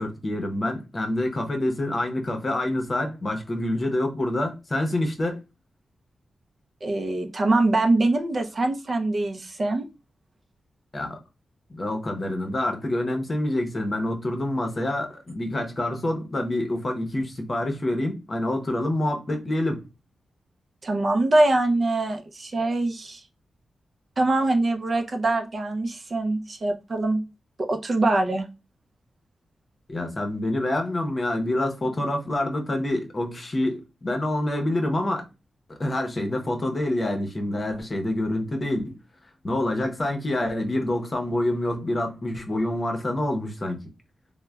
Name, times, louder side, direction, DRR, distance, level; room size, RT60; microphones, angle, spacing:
voice 1, 0.0-5.4 10.9-11.2 11.7-19.8 29.9-35.2 35.7-39.0 39.4-43.8, left 1 dB, 35° left, 0.7 m, -27 dB
voice 2, 6.8-9.9 20.8-23.2 24.2-27.2 27.6-28.5, right 2 dB, 45° right, 0.5 m, -23 dB
3.1 x 2.1 x 2.2 m
cardioid pair, 75°, 0 cm